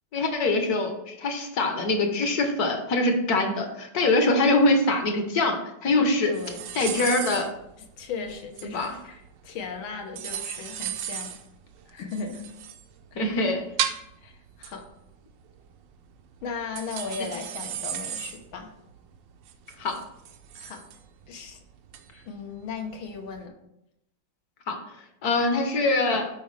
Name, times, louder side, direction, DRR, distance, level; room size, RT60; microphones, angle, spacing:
voice 1, 0.1-6.3 6.7-7.5 8.6-9.0 13.1-13.6 19.8-20.0 24.7-24.8 25.2-26.2, left 2 dB, 55° left, 5 dB, 1.4 m, -23 dB
voice 2, 6.3-6.6 8.0-11.3 11.9-12.4 13.1-13.4 14.2-14.3 14.6-14.9 16.4-18.7 20.5-20.8 21.3-21.6 22.2-23.5, left 5 dB, 75° left, 4 dB, 1.7 m, -37 dB
sound 1, 6.3-23.4, right 9 dB, 70° right, 1.3 m, -36 dB
12.5 x 4.6 x 3.2 m, 0.83 s
omnidirectional pair, 2.2 m